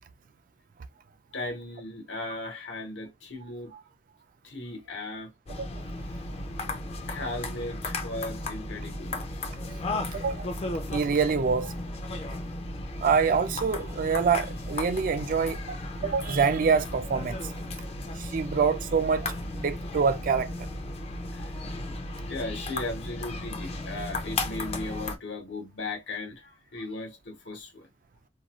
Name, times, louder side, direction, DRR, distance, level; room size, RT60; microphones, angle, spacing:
voice 1, 1.3-3.7 4.4-5.3 7.1-9.2 21.3-21.5 22.3-27.9, left 2 dB, 80° left, 1.1 m, -37 dB
sound 1, 5.5-25.2, left 2 dB, 35° left, 0.5 m, -35 dB
voice 2, 10.1-10.5 10.9-11.7 13.0-15.8 16.0-17.4 18.2-20.5, right 5 dB, 50° right, 0.3 m, -25 dB
2.5 x 2.3 x 2.9 m
head